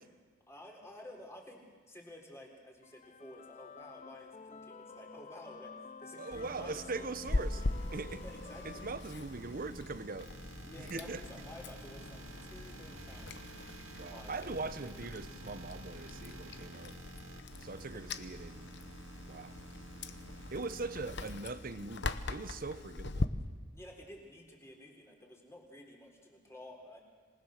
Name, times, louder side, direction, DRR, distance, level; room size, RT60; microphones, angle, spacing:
voice 1, 0.5-7.7 8.1-8.9 10.6-13.5 14.0-14.9 17.8-18.0 23.7-27.0, left 1 dB, 15° left, 3.8 m, -52 dB
sound 1, 2.8-9.8, left 5 dB, 35° left, 0.6 m, -51 dB
voice 2, 6.2-7.6 7.9-8.2 8.6-10.3 10.8-11.2 14.0-16.9 17.6-18.7 19.3-19.6 20.5-23.3, right 3 dB, 45° right, 0.9 m, -41 dB
sound 2, 6.3-21.4, right 2 dB, 80° right, 2.4 m, -51 dB
Chewing mastication, 7.2-23.3, left 2 dB, 60° left, 0.9 m, -41 dB
27.0 x 20.0 x 6.6 m
head